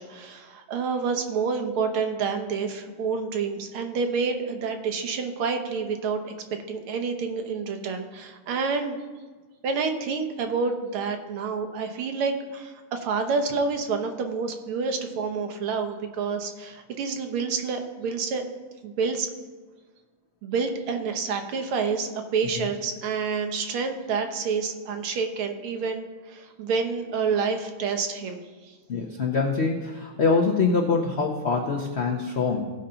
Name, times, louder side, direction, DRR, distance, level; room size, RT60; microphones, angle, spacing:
voice 1, 0.0-6.3 6.7-9.0 9.6-18.4 18.8-19.3 20.4-28.7, right 5 dB, 85° right, 6 dB, 1.8 m, -28 dB
voice 2, 28.9-32.6, left 4 dB, 70° left, 1 dB, 0.6 m, -24 dB
16.5 x 5.5 x 3.9 m, 1.4 s
omnidirectional pair, 2.3 m